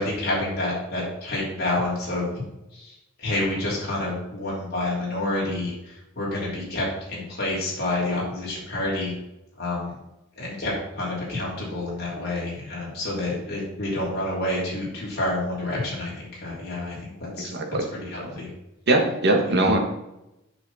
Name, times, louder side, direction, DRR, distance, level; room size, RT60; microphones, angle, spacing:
voice 1, 0.0-2.3 2.7-9.1 9.6-9.9 10.4-17.5 17.9-18.5 19.4-19.6, left 1 dB, 55° left, -6 dB, 3.2 m, -28 dB
voice 2, 17.5-17.8 18.9-19.8, right 2 dB, 60° right, 2 dB, 1.5 m, -20 dB
8.7 x 5.6 x 4.2 m, 0.91 s
head